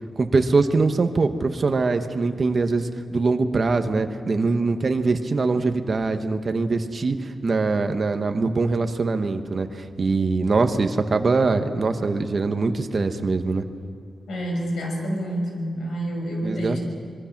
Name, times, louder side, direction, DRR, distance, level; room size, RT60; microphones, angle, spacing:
voice 1, 0.2-13.6 16.4-16.8, right 3 dB, 35° right, 7 dB, 1.2 m, -23 dB
voice 2, 14.3-16.8, equal, 85° left, 1 dB, 6.2 m, -28 dB
25.5 x 22.5 x 6.0 m, 2.3 s
wide cardioid pair, 175°, 0 cm